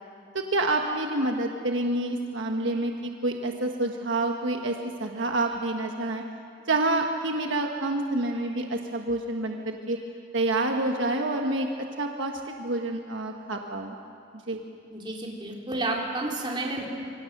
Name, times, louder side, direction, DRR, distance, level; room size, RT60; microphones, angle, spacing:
voice 1, 0.3-6.2 6.7-10.0 10.3-11.7 12.0-14.0 14.5-14.6, right 2 dB, 65° right, 3 dB, 1.4 m, -28 dB
voice 2, 14.9-16.9, right 2 dB, 25° right, -2 dB, 3.5 m, -31 dB
27.0 x 24.0 x 6.7 m, 2.5 s
head